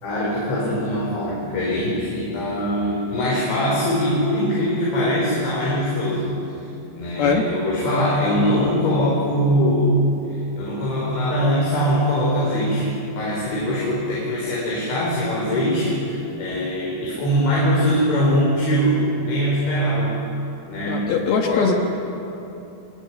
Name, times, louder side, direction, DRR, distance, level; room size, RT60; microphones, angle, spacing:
voice 1, 0.0-6.5 7.0-9.9 10.3-20.1 20.7-21.1 21.4-21.8, equal, 85° left, -5 dB, 7.3 m, -22 dB
voice 2, 7.2-7.5 20.9-21.7, left 5 dB, 65° left, 3 dB, 3.1 m, -20 dB
25.5 x 20.5 x 9.5 m, 2.9 s
omnidirectional pair, 5.1 m